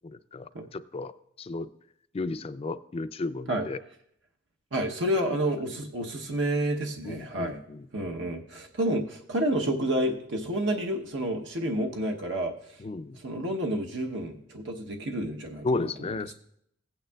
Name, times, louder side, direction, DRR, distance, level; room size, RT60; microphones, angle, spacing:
voice 1, 0.3-1.1 1.4-1.7 2.1-3.8 5.2-5.3 7.0-8.1 12.8-13.2 15.6-16.3, left 3 dB, 30° left, 12 dB, 0.4 m, -33 dB
voice 2, 4.7-7.6 7.9-12.5 13.2-15.9 16.3-16.4, right 1 dB, 70° right, 2 dB, 0.9 m, -29 dB
16.0 x 8.9 x 2.3 m, 0.73 s
head